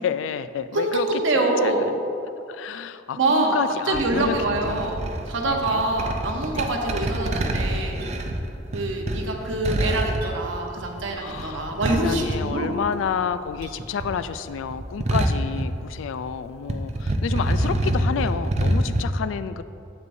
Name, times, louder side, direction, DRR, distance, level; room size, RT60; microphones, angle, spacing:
voice 1, 0.0-1.2 1.6-1.9 2.5-4.9 5.4-5.8 6.5-6.7 11.2-19.6, left 6 dB, 85° left, 13 dB, 0.3 m, -30 dB
voice 2, 0.7-1.9 3.2-3.6 3.9-7.9 8.7-12.7 17.5-17.7, right 2 dB, 80° right, 1 dB, 0.9 m, -25 dB
sound 1, 3.9-13.2 13.5-16.3 16.6-19.0, right 1 dB, 35° right, 0.5 m, -26 dB
Chink clink, 8.0-8.2 10.2-10.4 12.1-12.3 13.6-13.8, right 4 dB, 55° right, 1.4 m, -44 dB
8.1 x 8.0 x 2.6 m, 2.6 s
head